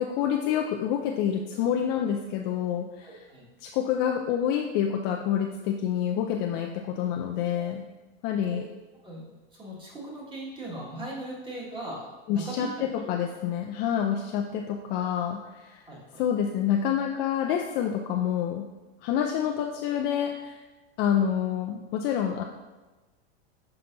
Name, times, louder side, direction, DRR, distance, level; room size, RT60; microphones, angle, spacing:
voice 1, 0.0-3.2 3.6-7.9 8.2-8.7 12.3-15.9 16.2-18.7 19.0-20.6 21.0-22.4, left 9 dB, 35° left, 2 dB, 0.4 m, -27 dB
voice 2, 3.0-3.4 7.5-7.7 8.5-8.7 9.0-13.1 15.9-16.2, right 1 dB, 15° right, -4 dB, 1.7 m, -39 dB
6.8 x 5.6 x 2.6 m, 1.2 s
supercardioid pair, 135°, 31 cm